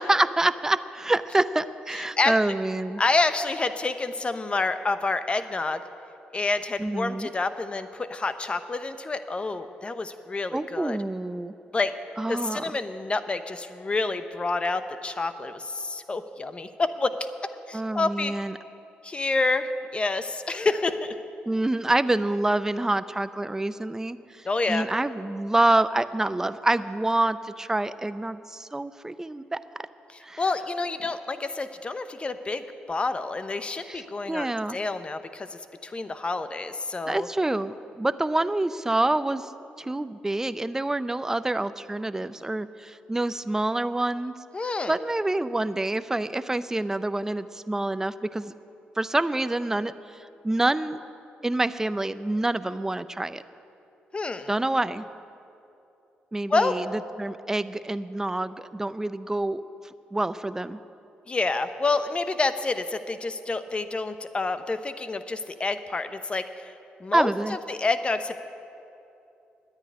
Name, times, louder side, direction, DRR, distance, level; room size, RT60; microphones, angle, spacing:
voice 1, 0.0-3.0 6.8-7.3 10.5-11.5 12.2-12.6 17.7-18.5 21.5-29.6 30.2-30.4 33.9-34.8 37.1-39.5 39.8-44.4 44.9-48.5 49.0-49.9 50.4-51.0 51.4-53.4 54.5-55.1 56.3-56.9 57.2-59.6 60.1-60.8 67.1-67.6, right 2 dB, 15° right, 13 dB, 0.5 m, -27 dB
voice 2, 1.9-2.4 3.0-5.8 6.3-11.0 11.7-11.9 12.3-18.3 19.0-21.1 24.4-24.9 30.1-37.3 44.5-45.0 54.1-54.5 56.5-56.8 61.3-66.7 67.0-67.3 67.7-68.4, left 3 dB, 30° left, 10 dB, 0.8 m, -28 dB
11.0 x 9.7 x 9.6 m, 2.8 s
cardioid pair, 80°, 4 cm